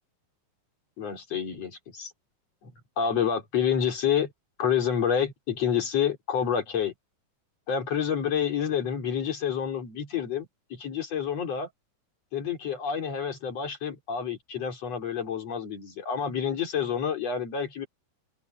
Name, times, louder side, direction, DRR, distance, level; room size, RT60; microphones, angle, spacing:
voice 1, 1.0-2.1 2.6-4.3 4.6-6.9 7.7-11.7 12.3-17.9, left 8 dB, 50° left, 4.6 m, -28 dB
open air
omnidirectional pair, 3.7 m